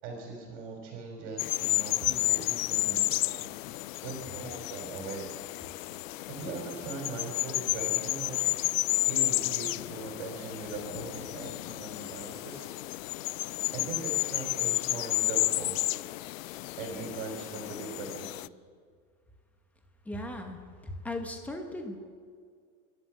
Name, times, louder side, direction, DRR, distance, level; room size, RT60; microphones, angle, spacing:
voice 1, 0.0-3.5 4.0-5.3 6.3-8.4 9.0-12.7 13.7-15.8 16.8-18.5, right 4 dB, 50° right, -1 dB, 5.0 m, -40 dB
sound 1, 1.4-18.5, left 18 dB, 65° left, 0.5 m, -31 dB
voice 2, 20.0-22.0, left 1 dB, 5° left, 4 dB, 1.1 m, -38 dB
28.5 x 12.0 x 7.6 m, 2.1 s
supercardioid pair, 175°, 43 cm